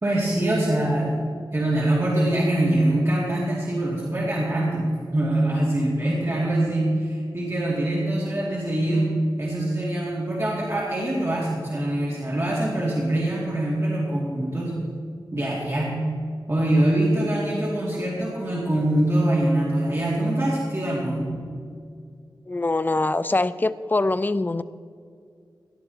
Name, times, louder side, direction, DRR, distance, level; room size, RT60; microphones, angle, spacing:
voice 1, 0.0-9.1 9.4-14.7 15.3-16.0 16.5-21.4, right 1 dB, 35° right, -6 dB, 2.4 m, -24 dB
voice 2, 22.5-24.6, left 2 dB, 25° left, 13 dB, 0.4 m, -23 dB
18.0 x 11.5 x 2.9 m, 2.3 s
wide cardioid pair, 90°, 8 cm